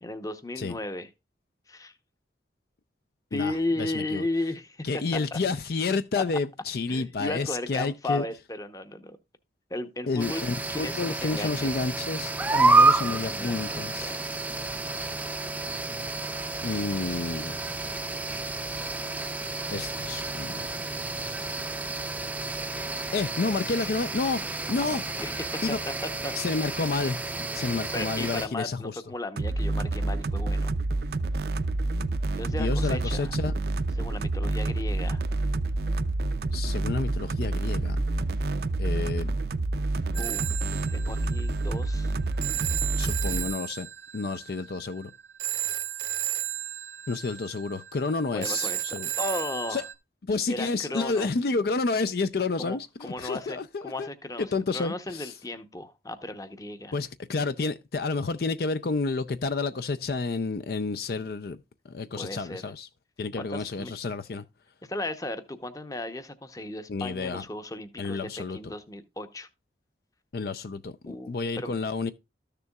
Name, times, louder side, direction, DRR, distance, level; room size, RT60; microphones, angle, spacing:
voice 1, 0.0-1.1 1.7-1.9 3.3-5.4 6.2-6.3 6.9-9.2 9.7-10.4 10.7-11.8 13.0-14.6 22.7-23.0 25.2-25.6 25.9-26.3 27.7-30.7 32.3-33.3 34.0-35.2 40.1-40.6 40.9-42.2 48.3-49.8 50.5-51.3 52.6-52.8 53.0-57.0 62.2-62.7 63.4-63.9 64.8-69.5 71.1-71.8, left 2 dB, 20° left, 0.8 m, -35 dB
voice 2, 3.3-4.2 4.8-8.2 10.1-14.1 16.6-17.6 19.7-20.7 23.1-25.2 25.6-25.8 26.4-29.0 32.4-33.5 36.5-38.0 38.8-39.3 43.0-43.9 44.1-45.1 47.1-49.1 49.7-49.8 50.3-54.1 54.4-55.3 56.9-61.6 61.9-62.9 63.2-64.4 66.9-67.4 68.0-68.6 70.3-72.1, left 3 dB, 60° left, 0.5 m, -30 dB
sound 1, 10.2-28.5, right 3 dB, 10° right, 0.5 m, -29 dB
sound 2, 29.4-43.5, right 2 dB, 60° right, 0.5 m, -28 dB
Telephone, 40.1-49.9, right 13 dB, 85° right, 0.9 m, -34 dB
13.5 x 6.8 x 2.3 m
head